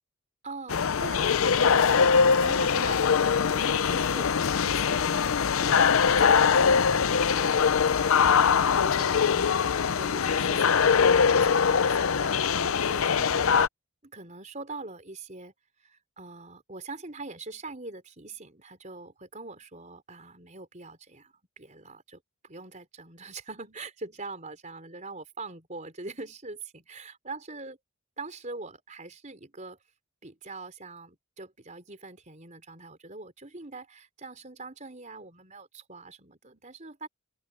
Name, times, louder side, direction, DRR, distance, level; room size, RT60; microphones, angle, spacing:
voice 1, 0.4-4.3 4.6-8.2 8.8-13.4 14.0-15.5 15.8-27.8 28.2-29.8 30.2-37.1, right 3 dB, 35° right, 4.3 m, -43 dB
sound 1, 0.7-13.7, left 6 dB, 65° left, 0.5 m, -22 dB
open air
head